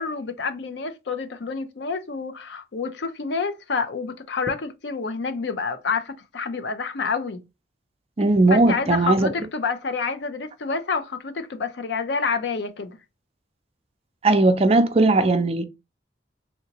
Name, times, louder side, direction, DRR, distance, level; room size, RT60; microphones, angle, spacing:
voice 1, 0.0-7.4 8.5-13.0, left 4 dB, 70° left, 0.5 m, -28 dB
voice 2, 8.2-9.3 14.2-15.6, right 2 dB, 35° right, 0.4 m, -18 dB
3.4 x 2.8 x 2.8 m
head